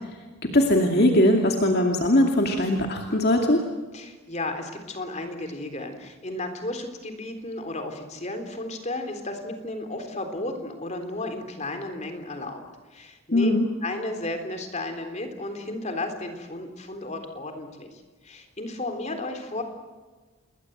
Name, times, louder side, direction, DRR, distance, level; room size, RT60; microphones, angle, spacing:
voice 1, 0.4-3.6 13.3-13.7, left 1 dB, 50° left, 2 dB, 2.5 m, -20 dB
voice 2, 3.9-12.6 12.9-13.5 13.8-19.6, left 2 dB, 30° left, 6 dB, 3.6 m, -33 dB
28.5 x 21.5 x 8.1 m, 1.3 s
head